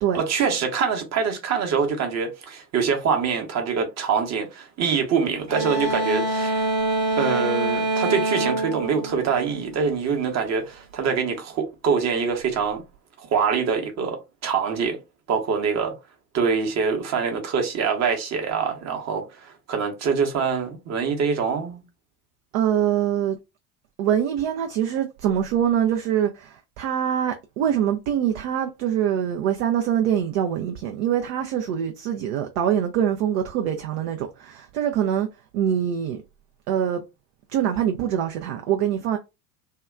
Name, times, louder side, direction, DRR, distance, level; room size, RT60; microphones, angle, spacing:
voice 1, 0.1-6.6 7.2-12.8 13.2-15.0 15.3-15.9 16.3-21.8, right 6 dB, 30° right, 0.9 m, -24 dB
sound 1, 5.5-9.9, right 2 dB, 85° right, 0.9 m, -25 dB
voice 2, 22.5-23.4 24.0-35.3 35.5-36.2 36.7-37.0 37.5-39.2, right 9 dB, 50° right, 0.5 m, -24 dB
2.7 x 2.3 x 2.3 m
figure-of-eight pair, 70°, 50 cm